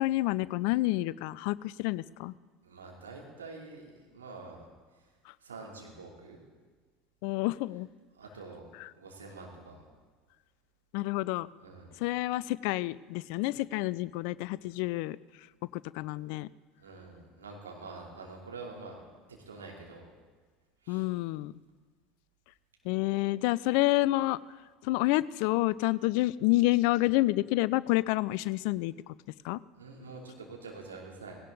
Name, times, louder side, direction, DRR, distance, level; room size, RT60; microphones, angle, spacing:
voice 1, 0.0-2.3 7.2-7.9 10.9-11.5 12.0-15.2 15.7-16.5 20.9-21.5 22.8-24.4 24.8-28.9 29.4-29.6, left 19 dB, 60° left, 20 dB, 0.3 m, -28 dB
voice 2, 2.6-4.6 4.9-5.1 5.4-6.4 8.1-8.7 9.0-9.8 11.6-11.9 16.8-19.0 19.4-20.1 20.8-21.1 29.7-31.4, right 3 dB, 80° right, -1 dB, 2.9 m, -46 dB
18.0 x 17.5 x 3.9 m, 1.4 s
figure-of-eight pair, 70°, 0 cm